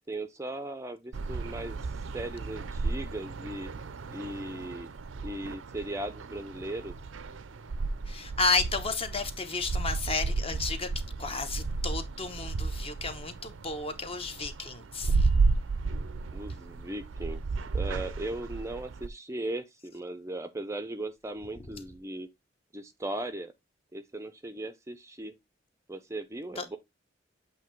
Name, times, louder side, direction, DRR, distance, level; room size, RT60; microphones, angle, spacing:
voice 1, 0.1-3.7 4.1-4.9 5.2-6.9 16.3-17.4 17.7-22.3 22.7-23.5 23.9-25.4 25.9-26.8, right 1 dB, 15° right, 0.5 m, -38 dB
sound 1, 1.1-19.1, right 3 dB, 75° right, 0.5 m, -33 dB
voice 2, 8.1-10.9 11.2-15.3 26.6-26.7, left 4 dB, 30° left, 0.8 m, -32 dB
8.1 x 2.7 x 4.5 m
head